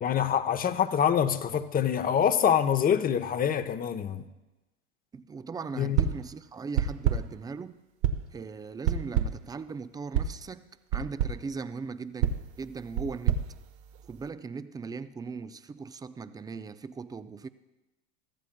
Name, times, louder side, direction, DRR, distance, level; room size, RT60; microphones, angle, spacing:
voice 1, 0.0-4.2 5.7-6.0, left 8 dB, 25° left, 0.8 m, -25 dB
voice 2, 5.1-7.8 8.3-13.4 14.1-17.5, right 5 dB, 10° right, 0.4 m, -39 dB
sound 1, 6.0-6.3 6.8-7.4 8.0-8.4 8.8-9.5 10.1-10.4 10.9-11.4 12.2-14.3, right 8 dB, 55° right, 1.0 m, -29 dB
23.0 x 14.5 x 2.3 m
hypercardioid pair, 100°, 37 cm